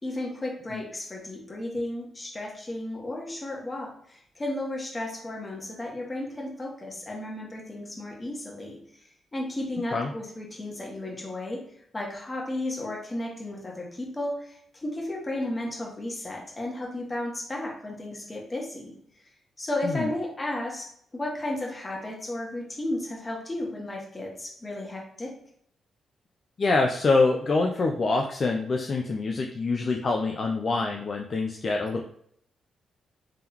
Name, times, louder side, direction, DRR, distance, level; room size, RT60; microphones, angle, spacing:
voice 1, 0.0-11.6 11.9-18.9 19.2-25.3, left 1 dB, 30° left, -1 dB, 1.6 m, -34 dB
voice 2, 26.6-32.0, left 3 dB, 50° left, 2 dB, 0.5 m, -25 dB
3.7 x 3.4 x 2.9 m, 0.67 s
supercardioid pair, 50°, 0 cm